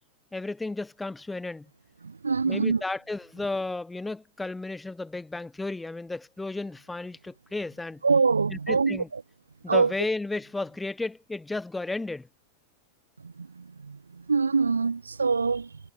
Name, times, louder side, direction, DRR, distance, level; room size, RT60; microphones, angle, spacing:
voice 1, 0.3-1.7 2.4-8.0 8.5-9.1 9.6-12.3, left 2 dB, 10° left, 0.6 m, -33 dB
voice 2, 2.0-2.8 8.0-9.2 9.7-9.9 13.2-15.8, right 4 dB, 75° right, 0.3 m, -25 dB
figure-of-eight pair, 90°, 0 cm